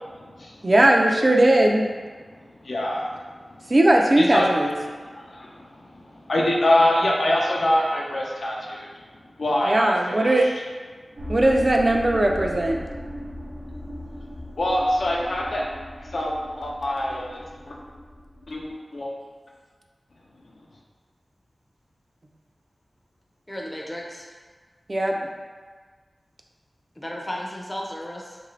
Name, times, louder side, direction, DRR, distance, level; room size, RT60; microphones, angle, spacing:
voice 1, 0.6-1.9 3.7-4.7 9.6-10.5 11.3-12.8 24.9-25.2, right 1 dB, 45° right, 1 dB, 0.3 m, -18 dB
voice 2, 2.6-3.1 4.2-4.5 5.2-8.9 9.4-9.9 14.6-15.6 16.1-17.4 17.7-17.8 18.5-18.7 18.9-19.1, left 1 dB, 75° left, -3 dB, 0.5 m, -24 dB
sound 1, 11.2-18.7, equal, 60° right, 0.8 m, -38 dB
voice 3, 23.5-24.3 27.0-28.4, equal, 20° left, -1 dB, 0.5 m, -34 dB
3.1 x 2.6 x 3.0 m, 1.5 s
wide cardioid pair, 65°, 0 cm